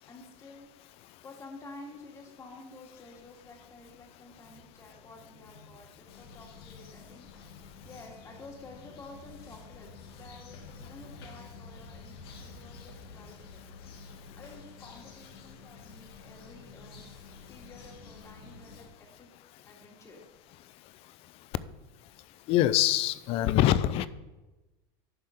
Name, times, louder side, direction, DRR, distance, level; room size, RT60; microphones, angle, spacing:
voice 1, 0.1-7.3 7.8-13.6 14.4-17.0 17.5-19.3 19.6-20.2, left 2 dB, 25° left, 1 dB, 2.0 m, -51 dB
sound 1, 2.9-13.4, left 2 dB, 70° left, 1.9 m, -54 dB
sound 2, 6.1-18.9, left 4 dB, 85° left, 1.4 m, -51 dB
voice 2, 22.5-24.1, left 13 dB, 50° left, 16 dB, 0.5 m, -24 dB
11.0 x 3.7 x 6.5 m, 1.1 s
supercardioid pair, 115°, 12 cm